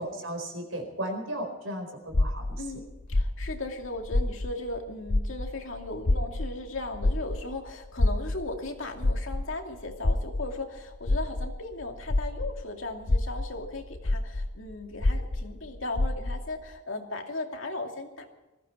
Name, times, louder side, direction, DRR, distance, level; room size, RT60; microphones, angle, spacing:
voice 1, 0.0-2.6, right 1 dB, 75° right, 4 dB, 4.5 m, -35 dB
sound 1, 2.1-4.8 5.1-12.6 13.0-16.5, left 2 dB, 50° left, 0.7 m, -28 dB
voice 2, 2.6-18.3, left 2 dB, 75° left, 3 dB, 2.4 m, -37 dB
20.0 x 15.0 x 4.5 m, 1.1 s
head